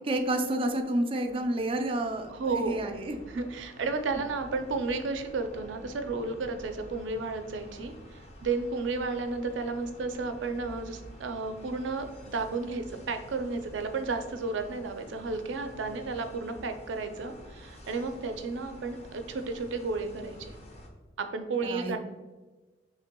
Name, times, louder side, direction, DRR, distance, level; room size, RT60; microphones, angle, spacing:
voice 1, 0.1-3.2 21.6-22.0, right 1 dB, 30° right, 5 dB, 0.4 m, -30 dB
sound 1, 1.2-20.9, equal, 35° left, 0.7 m, -49 dB
voice 2, 2.3-2.8 3.3-20.5 21.2-22.0, right 3 dB, 85° right, 7 dB, 0.5 m, -33 dB
5.6 x 3.2 x 2.2 m, 1.2 s
head